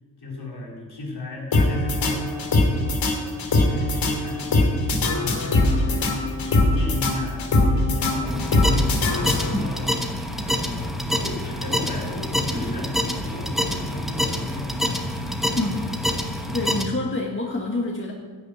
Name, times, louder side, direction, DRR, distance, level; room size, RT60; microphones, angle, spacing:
voice 1, 0.2-7.5 7.7-9.9 10.4-15.1, left 3 dB, 55° left, -2 dB, 3.8 m, -35 dB
sound 1, 1.5-9.8, left 2 dB, 80° left, 2.7 m, -22 dB
sound 2, 8.2-16.8, equal, ahead, 1.3 m, -27 dB
voice 2, 15.5-15.9 16.5-18.1, left 2 dB, 25° left, -1 dB, 1.7 m, -27 dB
12.0 x 6.2 x 9.0 m, 1.4 s
cardioid pair, 80°, 45 cm